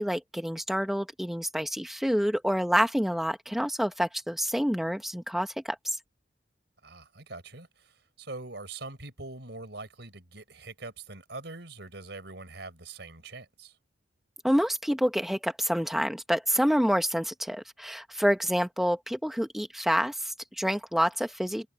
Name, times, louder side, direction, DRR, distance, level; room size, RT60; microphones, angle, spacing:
voice 1, 0.0-6.0 14.4-21.7, equal, ahead, 0.9 m, -27 dB
voice 2, 6.8-13.8, right 3 dB, 65° right, 4.5 m, -43 dB
head